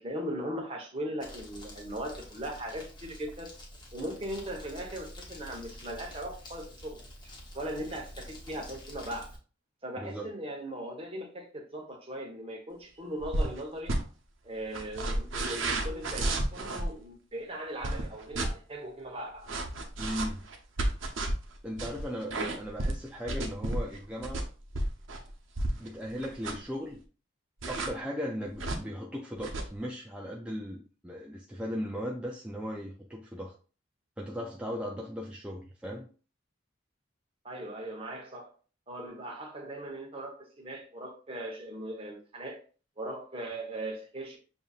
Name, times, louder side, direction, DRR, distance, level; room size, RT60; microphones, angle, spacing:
voice 1, 0.0-3.5 3.9-7.0 7.5-9.3 9.8-14.0 14.4-19.5 37.4-38.5 38.9-42.6 43.0-44.4, right 1 dB, 30° right, 1 dB, 1.1 m, -39 dB
Crumpling crinkling, 1.2-9.4, equal, 20° left, 1.0 m, -47 dB
voice 2, 10.0-10.3 20.0-20.4 21.6-24.4 25.8-27.0 27.7-33.5 34.2-36.1, equal, 5° right, -1 dB, 0.4 m, -37 dB
sound 1, 13.2-13.6 13.9-14.0 14.7-16.9 17.8-18.5 19.5-25.9 26.2-26.7 27.6-27.9 28.5-28.8 29.4-29.7, right 1 dB, 75° right, 0.8 m, -31 dB
6.7 x 2.7 x 2.4 m, 0.37 s
head